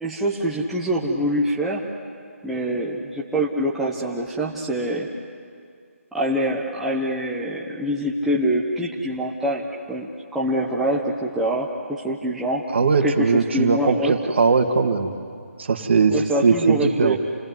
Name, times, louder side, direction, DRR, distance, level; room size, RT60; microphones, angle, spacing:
voice 1, 0.0-1.9 2.4-5.1 6.1-12.7 13.0-14.1 16.1-17.2, right 1 dB, ahead, -5 dB, 1.1 m, -25 dB
voice 2, 12.7-15.1 15.6-16.1 16.4-17.2, right 5 dB, 50° right, 6 dB, 2.1 m, -19 dB
28.5 x 18.0 x 9.7 m, 2.2 s
figure-of-eight pair, 160°, 8 cm